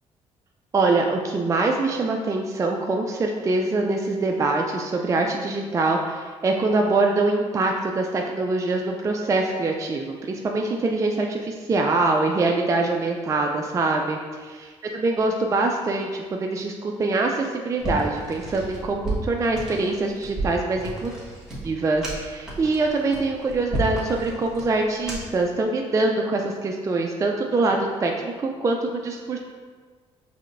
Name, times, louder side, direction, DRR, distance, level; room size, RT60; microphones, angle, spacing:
voice 1, 0.7-21.1 21.6-29.4, right 3 dB, 25° right, 1 dB, 0.4 m, -24 dB
sound 1, 17.8-25.5, right 2 dB, 5° right, 1.4 m, -33 dB
4.9 x 3.2 x 2.5 m, 1.5 s
cardioid pair, 80°, 12 cm